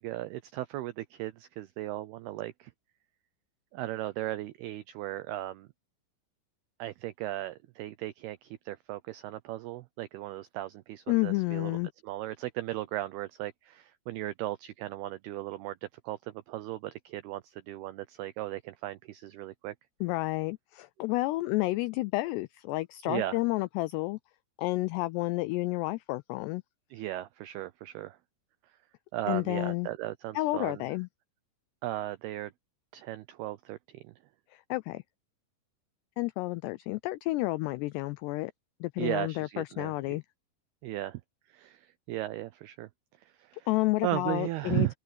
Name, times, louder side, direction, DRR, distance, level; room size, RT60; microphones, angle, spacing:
voice 1, 0.0-2.7 3.7-5.7 6.8-11.8 12.0-15.8 16.0-19.7 23.1-23.4 26.9-28.2 29.1-30.8 31.8-32.5 32.9-34.1 39.0-39.9 40.8-41.2 41.5-42.9 43.2-43.7 44.0-44.9, right 16 dB, 85° right, 2.2 m, -36 dB
voice 2, 11.1-11.9 20.0-24.2 24.6-26.6 29.3-29.9 30.4-31.1 34.5-35.0 36.2-38.5 38.8-40.2 43.7-44.9, left 20 dB, 90° left, 2.4 m, -30 dB
omnidirectional pair, 5.4 m